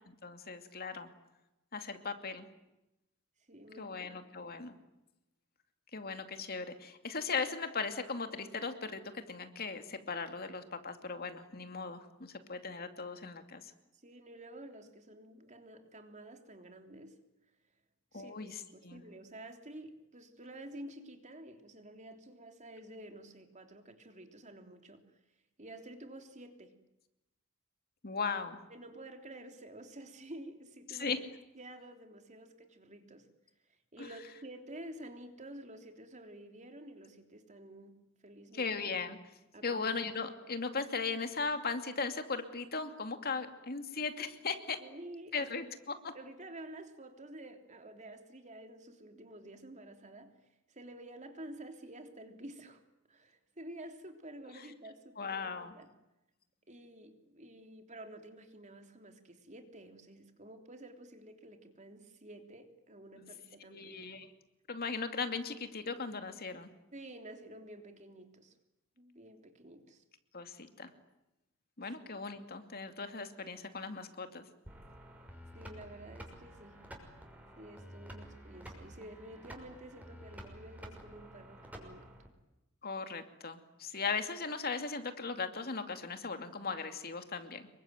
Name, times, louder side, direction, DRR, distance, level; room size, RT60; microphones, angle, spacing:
voice 1, 0.2-1.1 1.7-2.5 3.8-4.7 5.9-13.6 18.1-19.0 28.0-28.6 30.9-31.2 34.0-34.1 38.5-39.2 39.6-44.8 45.3-45.6 55.2-55.7 63.7-64.3 64.7-66.7 70.3-70.9 71.8-74.4 82.8-87.6, left 4 dB, 50° left, 7 dB, 2.5 m, -38 dB
voice 2, 3.5-4.4 13.9-17.2 18.1-25.1 25.6-26.7 28.7-31.2 31.6-33.3 33.9-38.7 39.5-39.9 44.8-45.7 46.1-52.8 53.1-55.9 56.7-64.2 66.9-68.5 69.0-70.0 75.5-76.9 77.6-82.1, right 1 dB, 35° right, 6 dB, 3.4 m, -50 dB
sound 1, 74.7-82.3, equal, 10° right, 6.1 m, -51 dB
27.5 x 23.5 x 9.3 m, 0.93 s
head